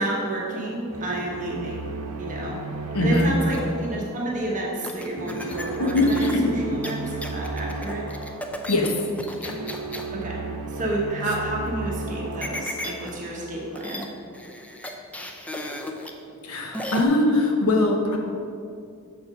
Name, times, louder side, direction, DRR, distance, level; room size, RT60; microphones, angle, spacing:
voice 1, 0.0-1.9 2.2-2.6 3.0-8.1 10.1-10.4 10.7-14.1, right 1 dB, 35° right, -3 dB, 1.2 m, -30 dB
sound 1, 0.9-14.0, right 3 dB, 75° right, 0.8 m, -35 dB
voice 2, 2.9-3.3 5.4-5.5 5.8-6.6 8.7-8.9 9.4-9.5 16.4-18.2, left 2 dB, 75° left, 1 dB, 1.1 m, -21 dB
sound 2, 3.5-3.8 4.8-10.1 12.4-13.1 13.4-13.5 13.7-14.1 14.3-16.1 16.7-17.0, left 1 dB, 5° left, 0.5 m, -35 dB
6.9 x 6.7 x 5.1 m, 2.5 s
head